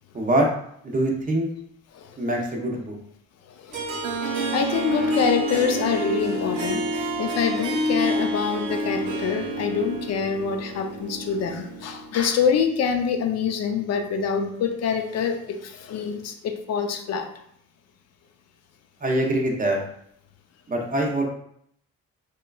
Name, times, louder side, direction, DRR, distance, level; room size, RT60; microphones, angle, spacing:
voice 1, 0.1-0.5 0.8-1.5 2.2-3.0 19.0-19.8 20.7-21.2, right 1 dB, 30° right, 0 dB, 0.6 m, -23 dB
voice 2, 3.6-4.0 4.5-6.8 7.2-17.3, left 6 dB, 60° left, 5 dB, 0.5 m, -25 dB
Harp, 3.7-12.2, right 1 dB, 75° right, 0.8 m, -28 dB
3.0 x 2.3 x 2.3 m, 0.69 s
cardioid pair, 90°, 30 cm